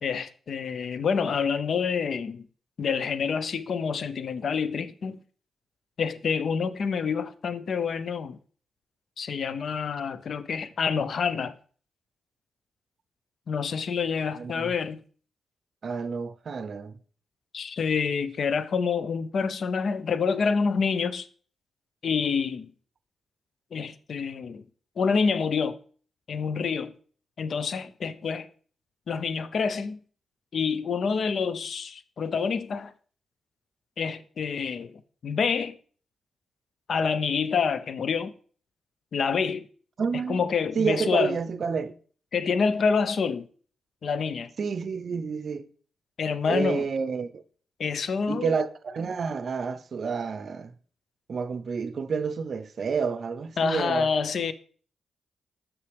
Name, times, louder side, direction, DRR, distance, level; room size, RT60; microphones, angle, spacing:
voice 1, 0.0-2.5 2.8-5.2 6.0-8.4 9.2-11.5 13.5-15.0 17.5-21.3 22.0-22.7 23.7-24.7 25.0-25.8 26.3-26.9 27.4-28.5 29.1-30.0 30.5-32.9 34.0-35.8 36.9-38.3 39.1-39.7 40.3-41.4 42.3-43.4 44.0-44.5 46.2-46.9 47.8-48.5 53.6-54.5, left 5 dB, 65° left, 0.5 m, -27 dB
voice 2, 14.4-14.7 15.8-16.9 40.0-40.4 40.8-41.9 44.6-45.7 46.5-47.4 48.3-50.7 51.3-54.1, right 5 dB, 60° right, 0.5 m, -29 dB
6.7 x 6.0 x 3.3 m
supercardioid pair, 50°, 0 cm